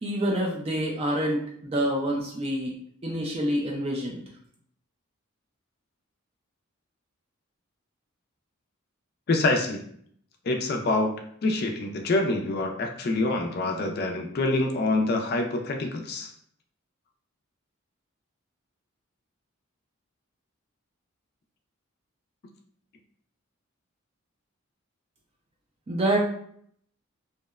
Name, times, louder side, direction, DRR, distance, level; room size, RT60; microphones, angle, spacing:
voice 1, 0.0-2.8 3.0-4.2 25.9-26.2, right 1 dB, 30° right, -1 dB, 0.3 m, -27 dB
voice 2, 9.3-9.8 10.5-11.1 11.4-16.3, left 2 dB, 45° left, 3 dB, 0.4 m, -26 dB
2.7 x 2.1 x 2.3 m, 0.64 s
head